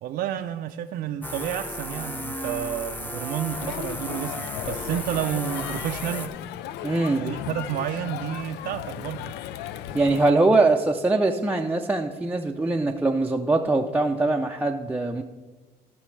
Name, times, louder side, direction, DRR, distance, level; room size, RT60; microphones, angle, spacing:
voice 1, 0.0-6.3 7.2-9.2, right 10 dB, 65° right, 5 dB, 0.5 m, -30 dB
sound 1, 1.2-6.3, left 1 dB, 10° left, 0.8 m, -34 dB
Crowd, 3.5-10.3, left 12 dB, 80° left, 0.4 m, -36 dB
voice 2, 6.8-7.2 9.9-15.2, right 2 dB, 10° right, 0 dB, 0.5 m, -22 dB
16.0 x 6.1 x 3.3 m, 1.2 s
cardioid pair, 110°, 17 cm